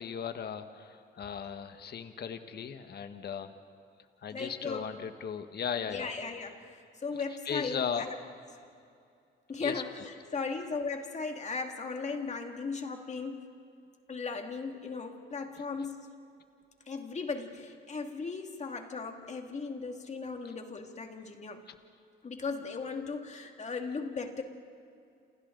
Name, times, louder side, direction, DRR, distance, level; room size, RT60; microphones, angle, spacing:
voice 1, 0.0-3.5 4.2-6.1 7.4-8.1 9.6-9.8 20.4-20.5, left 7 dB, 55° left, 8 dB, 1.4 m, -37 dB
voice 2, 4.3-4.9 5.9-8.2 9.5-13.4 14.1-16.0 16.9-21.6 22.2-24.4, left 4 dB, 35° left, 4 dB, 2.3 m, -37 dB
28.5 x 28.5 x 3.9 m, 2.5 s
cardioid pair, 90°, 20 cm